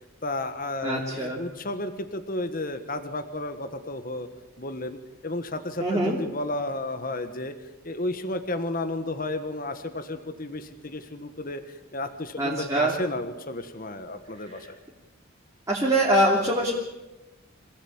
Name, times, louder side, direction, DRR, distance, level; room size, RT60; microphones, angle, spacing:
voice 1, 0.2-4.3 4.6-7.5 7.8-14.8, left 2 dB, 40° left, 8 dB, 1.4 m, -32 dB
voice 2, 0.8-1.4 5.8-6.2 12.4-12.9 15.7-16.7, right 1 dB, 15° right, -4 dB, 3.2 m, -23 dB
26.5 x 17.0 x 8.8 m, 1.0 s
head